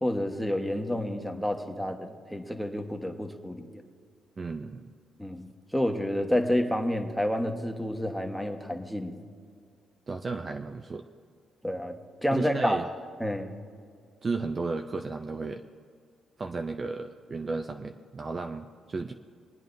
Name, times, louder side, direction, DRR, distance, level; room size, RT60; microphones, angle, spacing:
voice 1, 0.0-3.7 5.2-5.5 5.7-9.2 11.6-12.9 13.2-13.5, left 1 dB, ahead, 3 dB, 1.2 m, -29 dB
voice 2, 4.4-4.9 10.1-11.1 12.3-12.9 14.2-15.6 16.4-19.1, right 3 dB, 35° right, 5 dB, 0.5 m, -33 dB
26.0 x 9.1 x 2.6 m, 2.1 s
cardioid pair, 90°, 0 cm